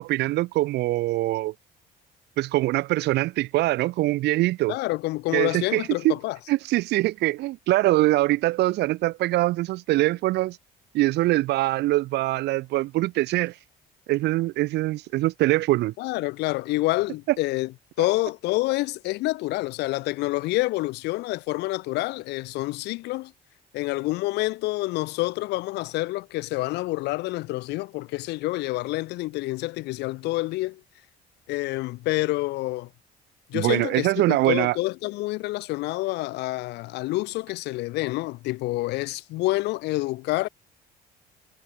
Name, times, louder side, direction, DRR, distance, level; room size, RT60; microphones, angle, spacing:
voice 1, 0.0-1.5 2.4-4.8 5.3-6.1 6.5-10.6 10.9-13.5 14.1-15.9 33.5-34.8, right 18 dB, 80° right, 4.2 m, -23 dB
voice 2, 4.7-6.4 16.0-17.7 18.0-23.3 23.7-30.8 31.5-32.9 33.5-40.5, left 20 dB, 90° left, 2.3 m, -28 dB
cardioid pair, 110°, 17 cm